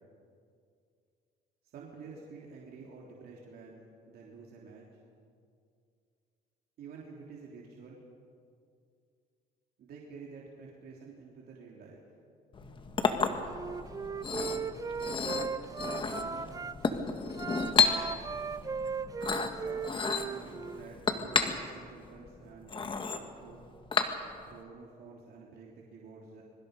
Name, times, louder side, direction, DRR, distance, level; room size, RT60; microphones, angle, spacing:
voice 1, 1.7-4.9 6.8-8.0 9.8-12.0 16.0-16.5 19.5-23.7 24.5-26.4, right 4 dB, 65° right, -3 dB, 3.3 m, -50 dB
Chink clink, 12.5-24.6, left 5 dB, 30° left, 1.7 m, -32 dB
Wind instrument woodwind instrument, 13.5-16.7 17.3-20.9, right 5 dB, 20° right, 0.6 m, -37 dB
25.5 x 24.0 x 5.3 m, 2.3 s
cardioid pair, 110°, 17 cm